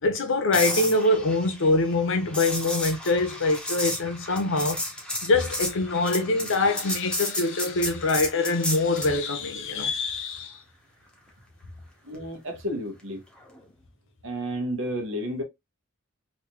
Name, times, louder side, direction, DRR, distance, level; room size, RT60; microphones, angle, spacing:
voice 1, 0.0-4.8 5.2-10.6, left 2 dB, 65° left, 0.8 m, -24 dB
sound 1, 0.5-9.2 13.4-13.6, left 1 dB, 5° left, 0.9 m, -32 dB
voice 2, 12.0-13.2 14.2-15.4, equal, 65° right, 1.3 m, -31 dB
3.3 x 2.8 x 3.0 m
head